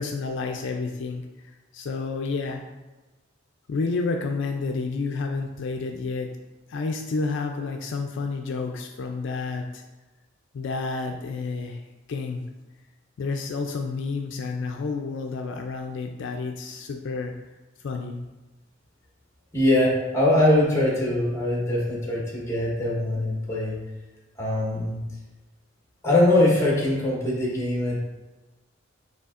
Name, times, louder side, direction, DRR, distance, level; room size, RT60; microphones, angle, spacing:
voice 1, 0.0-2.6 3.7-6.3 6.7-9.8 10.5-11.8 12.1-12.4 13.2-17.3 17.8-18.2, left 4 dB, 65° left, 3 dB, 0.4 m, -30 dB
voice 2, 19.5-23.8 24.4-25.0 26.0-28.0, left 1 dB, 15° left, -4 dB, 1.1 m, -22 dB
6.7 x 2.9 x 2.4 m, 1.1 s
head